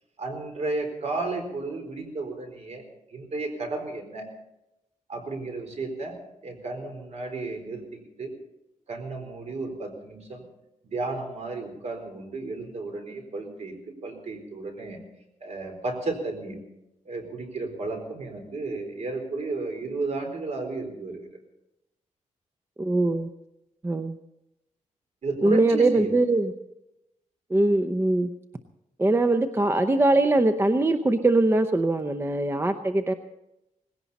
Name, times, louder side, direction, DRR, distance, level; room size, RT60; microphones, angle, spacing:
voice 1, 0.2-2.9 3.1-4.3 5.1-6.2 6.4-8.3 8.9-10.5 10.8-15.0 15.4-16.6 17.1-21.3 25.2-26.1, right 3 dB, 55° right, 4 dB, 4.2 m, -33 dB
voice 2, 22.8-23.3 23.8-24.2 25.4-26.5 27.5-28.3 29.0-33.1, right 2 dB, 20° right, 8 dB, 0.7 m, -22 dB
19.0 x 17.0 x 4.2 m, 0.87 s
wide cardioid pair, 115°, 13 cm